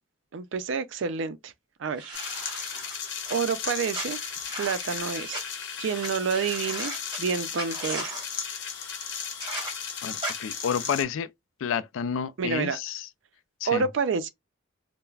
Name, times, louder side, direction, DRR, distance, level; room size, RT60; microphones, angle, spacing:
voice 1, 0.3-1.5 1.8-2.7 3.3-4.2 4.6-5.4 5.8-6.9 7.2-8.2 12.4-12.8 13.7-14.3, right 5 dB, 70° right, 0.4 m, -29 dB
sound 1, 2.0-3.4 3.9-5.4 6.0-6.1 6.3-7.2 7.5-8.3 9.4-9.7 10.2-10.3, right 1 dB, 25° right, 1.2 m, -37 dB
sound 2, 2.1-11.0, left 7 dB, 65° left, 0.9 m, -35 dB
voice 2, 10.0-11.3 11.6-13.1 13.6-13.9, left 7 dB, 80° left, 0.3 m, -30 dB
2.3 x 2.1 x 3.1 m
head